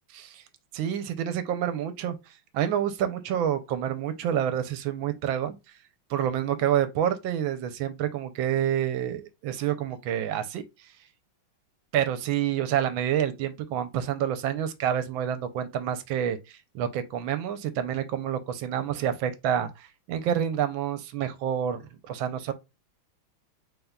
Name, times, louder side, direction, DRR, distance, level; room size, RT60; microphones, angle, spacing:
voice 1, 0.1-0.4 0.7-2.2 2.5-5.6 6.1-10.6 11.9-16.4 16.7-22.5, right 10 dB, 80° right, 1.3 m, -28 dB
4.1 x 3.5 x 2.2 m
omnidirectional pair, 2.2 m